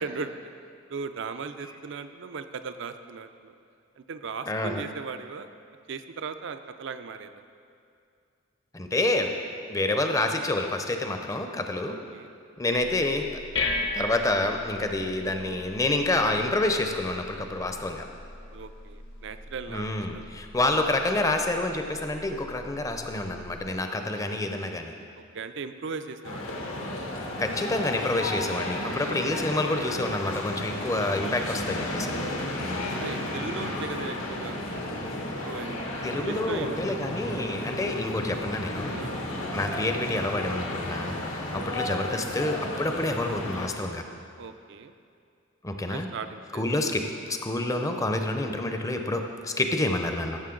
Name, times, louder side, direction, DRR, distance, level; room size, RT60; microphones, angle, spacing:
voice 1, 0.0-0.3 0.9-3.5 4.0-5.5 5.9-7.4 9.8-9.9 11.9-12.3 18.5-19.9 20.1-20.4 25.3-26.6 32.9-34.6 35.2-35.8 36.1-37.0 37.3-37.6 38.9-39.1 41.5-41.7 44.4-44.9 45.9-46.8, right 5 dB, 65° right, 9 dB, 0.5 m, -38 dB
voice 2, 4.5-4.8 8.7-9.3 9.7-12.0 12.6-13.3 13.9-18.0 19.7-24.9 27.4-32.2 36.0-39.0 39.5-44.0 45.6-46.1 46.5-47.0 47.3-50.4, left 2 dB, 15° left, 5 dB, 0.6 m, -28 dB
sound 1, 13.1-23.7, left 3 dB, 65° left, 0.9 m, -38 dB
sound 2, 26.2-43.7, left 1 dB, 85° left, 1.5 m, -33 dB
14.5 x 6.5 x 3.8 m, 2.4 s
head